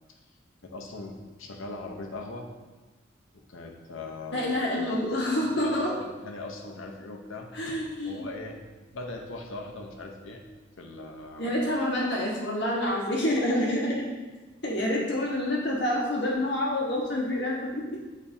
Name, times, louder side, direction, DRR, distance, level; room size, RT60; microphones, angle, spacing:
voice 1, 0.6-2.5 3.3-4.5 5.6-7.7 8.0-8.6 8.9-10.4 10.8-11.5, left 2 dB, 80° left, 1 dB, 0.9 m, -40 dB
voice 2, 4.3-5.9 7.5-8.3 11.4-13.9 14.6-18.0, left 1 dB, 55° left, -4 dB, 1.4 m, -27 dB
8.8 x 4.2 x 2.7 m, 1.2 s
head